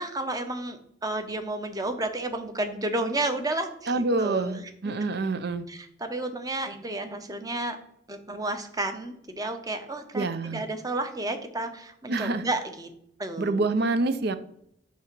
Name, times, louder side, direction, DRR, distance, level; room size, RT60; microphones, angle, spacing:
voice 1, 0.0-4.6 4.8-4.9 5.7-7.8 8.1-12.9 13.2-13.6, right 2 dB, 20° right, 7 dB, 0.7 m, -32 dB
voice 2, 3.9-5.7 10.1-10.6 12.1-12.4 13.4-14.4, right 3 dB, 55° right, 11 dB, 0.5 m, -26 dB
8.3 x 2.9 x 6.0 m, 0.72 s
head